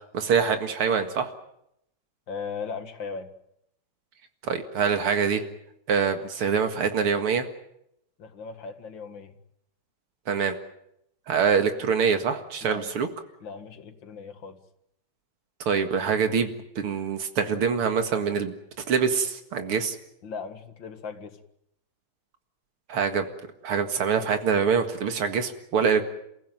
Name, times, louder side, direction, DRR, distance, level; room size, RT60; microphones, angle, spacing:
voice 1, 0.1-1.3 4.4-5.4 5.9-7.5 10.3-10.6 11.3-13.1 15.7-18.5 18.9-20.0 22.9-23.3 23.6-26.0, right 6 dB, 85° right, 7 dB, 2.8 m, -24 dB
voice 2, 2.3-3.3 8.2-9.3 12.6-12.9 13.4-14.6 20.2-21.4, left 5 dB, 60° left, 8 dB, 2.5 m, -37 dB
29.0 x 15.5 x 9.2 m, 0.78 s
omnidirectional pair, 2.3 m